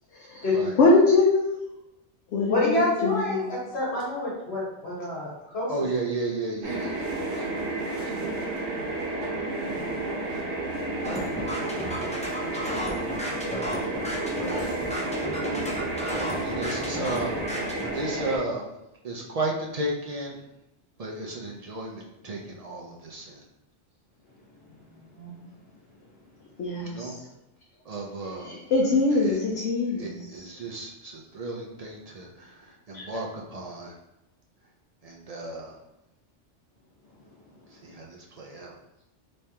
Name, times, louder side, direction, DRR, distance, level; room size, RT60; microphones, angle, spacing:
voice 1, 0.3-1.6 2.3-3.4 26.6-27.2 28.4-30.4, left 3 dB, 80° left, -3 dB, 0.9 m, -23 dB
voice 2, 2.5-5.9 14.2-14.6 25.1-25.4 32.9-33.0, left 2 dB, 65° left, -5 dB, 1.6 m, -29 dB
voice 3, 5.7-7.1 11.0-12.6 14.5-15.1 16.0-18.7 19.0-20.4 21.0-23.4 26.8-27.2 27.9-28.5 29.1-29.4 30.0-33.9 35.0-35.7 37.8-38.7, right 2 dB, 50° right, -1 dB, 0.4 m, -34 dB
sound 1, 6.6-18.4, right 2 dB, 70° right, 1.0 m, -31 dB
sound 2, 11.0-17.9, equal, 10° left, 0.3 m, -34 dB
3.3 x 3.1 x 2.8 m, 0.87 s
omnidirectional pair, 1.2 m